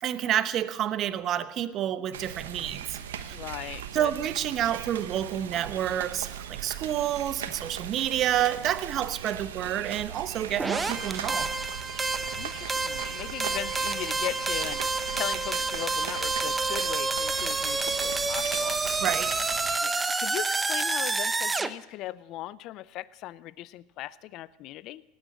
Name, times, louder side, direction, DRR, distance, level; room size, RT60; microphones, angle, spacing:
voice 1, 0.0-3.3 3.9-11.5 19.0-19.4, right 11 dB, 45° right, 1.0 m, -29 dB
sound 1, 2.1-19.8, right 9 dB, 85° right, 1.0 m, -39 dB
voice 2, 3.3-4.1 12.3-19.0 19.8-25.0, left 15 dB, 55° left, 0.5 m, -38 dB
sound 2, 10.6-21.7, right 3 dB, 15° right, 0.8 m, -29 dB
19.0 x 9.4 x 7.7 m
hypercardioid pair, 95°, 0 cm